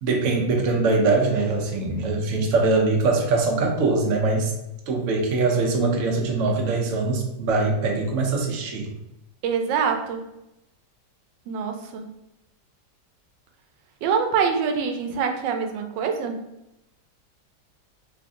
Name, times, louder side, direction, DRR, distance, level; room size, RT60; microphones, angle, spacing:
voice 1, 0.0-4.5 4.9-8.9, right 3 dB, 60° right, 1 dB, 0.9 m, -22 dB
voice 2, 9.4-10.2 11.5-12.1 14.0-16.4, right 6 dB, 90° right, 4 dB, 1.3 m, -25 dB
3.2 x 2.5 x 3.6 m, 0.87 s
omnidirectional pair, 1.9 m